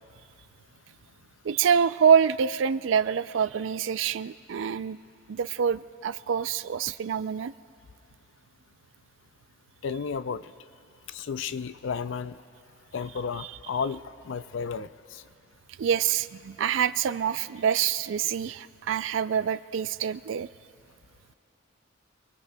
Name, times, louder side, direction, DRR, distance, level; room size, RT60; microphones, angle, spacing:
voice 1, 1.4-5.0 5.3-7.5 13.4-13.5 15.8-20.5, right 7 dB, 75° right, 15 dB, 0.3 m, -26 dB
voice 2, 9.8-10.5 11.1-12.4 12.9-15.2, left 6 dB, 75° left, 14 dB, 0.4 m, -33 dB
28.5 x 22.5 x 2.3 m, 2.7 s
head